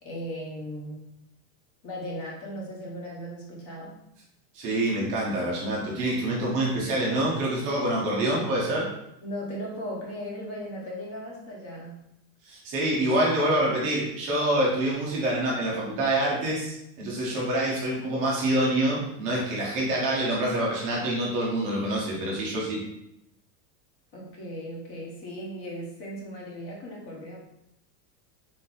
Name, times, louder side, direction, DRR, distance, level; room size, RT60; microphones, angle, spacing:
voice 1, 0.0-1.1 1.8-4.0 9.2-12.0 24.1-27.4, equal, 40° left, -2 dB, 1.1 m, -37 dB
voice 2, 4.5-8.9 12.4-22.8, right 1 dB, 20° right, -4 dB, 0.4 m, -26 dB
3.7 x 2.8 x 3.8 m, 0.81 s
supercardioid pair, 175°, 49 cm